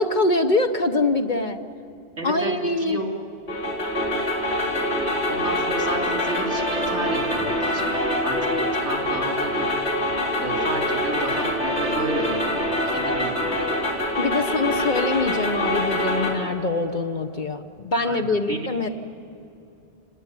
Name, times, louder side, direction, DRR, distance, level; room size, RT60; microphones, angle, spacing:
voice 1, 0.0-1.6 2.2-3.0 14.2-18.9, left 2 dB, 45° left, 8 dB, 1.0 m, -24 dB
voice 2, 2.2-2.5 2.8-3.1 5.3-7.9 8.2-9.7 10.4-13.7 18.0-18.2 18.5-18.7, right 1 dB, 65° right, 1 dB, 3.7 m, -31 dB
sound 1, 3.5-16.3, left 1 dB, 70° left, 4.4 m, -25 dB
27.5 x 18.5 x 9.9 m, 2.7 s
omnidirectional pair, 1.2 m